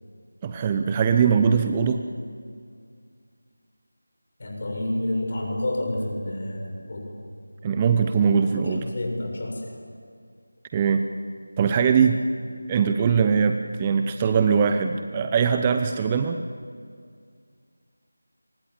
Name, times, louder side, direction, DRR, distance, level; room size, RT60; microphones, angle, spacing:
voice 1, 0.4-2.1 7.6-8.9 10.7-11.0 11.6-12.2 12.7-16.4, right 6 dB, 15° right, 7 dB, 0.8 m, -21 dB
voice 2, 4.4-7.2 8.2-9.8 14.1-14.4, left 1 dB, 40° left, 1 dB, 7.3 m, -30 dB
28.0 x 25.0 x 7.4 m, 2.2 s
figure-of-eight pair, 165°, 0 cm